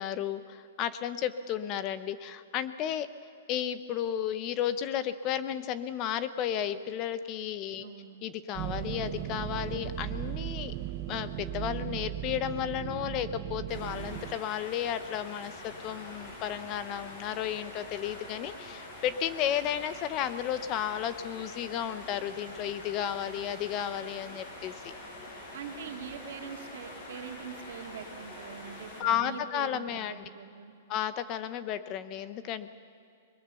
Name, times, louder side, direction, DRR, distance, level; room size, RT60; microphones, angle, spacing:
voice 1, 0.0-3.1 3.5-7.9 8.2-10.7 11.1-24.9 29.0-30.3 30.9-32.7, left 10 dB, 30° left, 13 dB, 0.8 m, -33 dB
voice 2, 7.8-8.2 25.5-30.7, right 7 dB, 65° right, 4 dB, 2.3 m, -43 dB
sound 1, 8.5-14.4, right 14 dB, 30° right, 0.9 m, -37 dB
sound 2, 13.7-29.0, left 1 dB, 45° left, 7.3 m, -45 dB
24.0 x 21.5 x 6.9 m, 2.5 s
hypercardioid pair, 160°, 0 cm